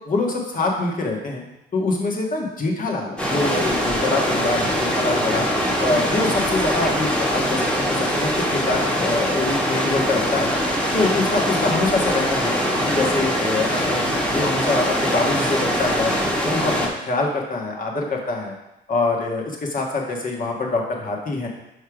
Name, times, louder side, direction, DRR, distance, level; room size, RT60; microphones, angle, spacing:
voice 1, 0.0-1.4 1.7-5.4 5.8-10.5 10.9-12.5 12.8-14.0 14.3-16.1 16.4-18.5 18.9-21.5, left 3 dB, 45° left, 0 dB, 1.6 m, -24 dB
sound 1, 3.2-16.9, equal, 5° left, 1.5 m, -22 dB
5.4 x 5.1 x 4.9 m, 0.92 s
cardioid pair, 90°, 20 cm